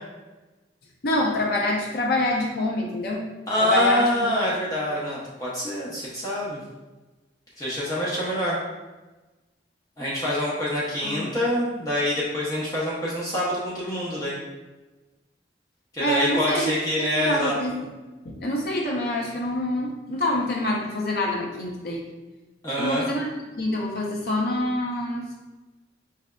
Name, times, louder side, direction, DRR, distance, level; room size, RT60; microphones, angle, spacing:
voice 1, 1.0-3.2 3.6-4.3 11.0-11.3 16.0-16.7 17.0-17.9 18.2-22.0 22.8-23.3 23.6-25.4, left 1 dB, 60° left, -1 dB, 0.6 m, -26 dB
voice 2, 3.5-6.6 7.6-8.6 10.0-14.4 15.9-17.5 22.6-23.1, equal, 20° left, -7 dB, 0.7 m, -25 dB
4.8 x 3.4 x 2.2 m, 1.1 s
head